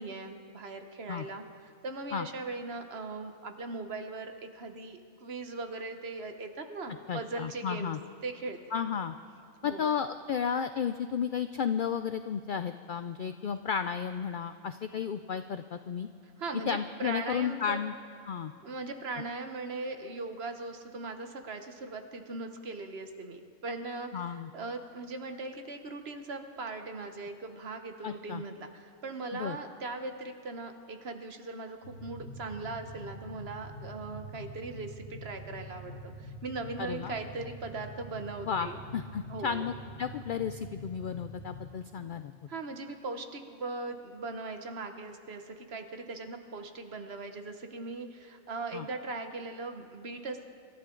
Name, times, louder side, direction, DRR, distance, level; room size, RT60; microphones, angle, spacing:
voice 1, 0.0-1.4 1.8-7.9 8.2-8.6 9.6-9.9 16.4-17.8 18.6-38.8 39.3-39.7 42.5-50.4, right 3 dB, 50° right, 6 dB, 1.2 m, -39 dB
voice 2, 7.1-8.0 8.7-9.2 9.6-16.1 16.7-17.9 18.3-18.5 24.1-24.5 28.0-28.4 29.3-29.6 36.8-37.1 38.5-42.3 48.7-48.9, left 7 dB, 80° left, 10 dB, 0.4 m, -33 dB
sound 1, 31.8-41.6, equal, 70° right, 5.9 m, -45 dB
26.0 x 13.0 x 3.8 m, 2.4 s
omnidirectional pair, 1.4 m